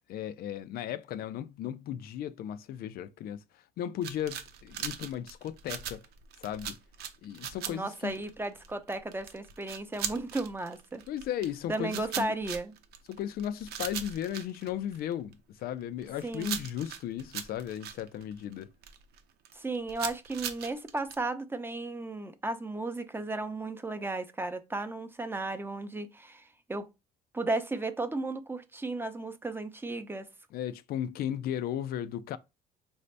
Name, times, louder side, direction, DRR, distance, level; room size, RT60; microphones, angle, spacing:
voice 1, 0.1-6.0 6.4-6.8 7.2-8.1 11.1-12.3 13.1-18.7 30.5-32.4, left 10 dB, 65° left, 0.4 m, -36 dB
sound 1, 4.0-15.3 15.8-19.2 19.4-21.2, right 9 dB, 75° right, 0.7 m, -39 dB
voice 2, 7.7-11.0 11.7-12.7 16.2-16.6 19.5-26.9 27.3-30.3, right 2 dB, 15° right, 0.6 m, -34 dB
4.9 x 2.7 x 3.3 m
cardioid pair, 110°, 17 cm